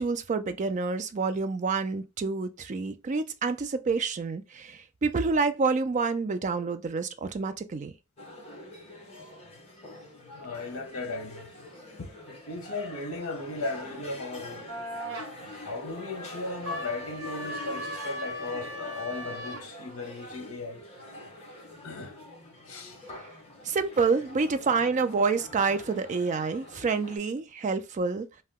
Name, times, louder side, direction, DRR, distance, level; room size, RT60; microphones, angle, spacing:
voice 1, 0.0-7.9 23.6-28.3, right 4 dB, 35° right, 0.4 m, -28 dB
sound 1, 8.2-27.2, left 1 dB, 30° left, 0.9 m, -45 dB
voice 2, 10.3-11.5 12.0-14.7 15.4-20.8 21.8-22.2 22.7-23.0, left 3 dB, 65° left, 0.8 m, -37 dB
sound 2, 14.7-15.3 16.6-19.7, equal, 60° right, 1.0 m, -37 dB
2.8 x 2.2 x 3.4 m
head